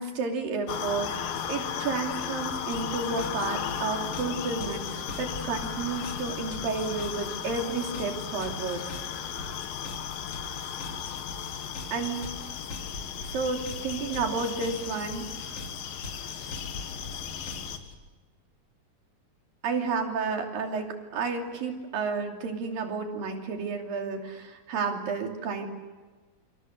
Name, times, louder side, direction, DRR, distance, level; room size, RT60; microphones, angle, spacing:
voice 1, 0.0-8.8 11.9-12.3 13.3-15.3 19.6-25.7, right 4 dB, 85° right, 3 dB, 4.6 m, -31 dB
sound 1, 0.7-17.8, left 8 dB, 85° left, 3.4 m, -35 dB
sound 2, 2.7-17.9, left 2 dB, 40° left, 4.2 m, -44 dB
28.5 x 26.5 x 6.7 m, 1.3 s
omnidirectional pair, 3.9 m